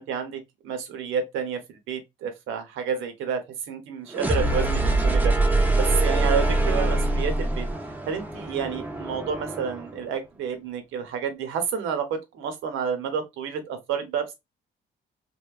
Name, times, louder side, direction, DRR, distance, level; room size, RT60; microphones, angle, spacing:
voice 1, 0.0-5.3 5.7-7.7 8.1-14.3, right 7 dB, 90° right, 0.7 m, -30 dB
sound 1, 4.1-10.0, right 2 dB, 10° right, 0.4 m, -24 dB
2.7 x 2.1 x 2.3 m
cardioid pair, 90°, 20 cm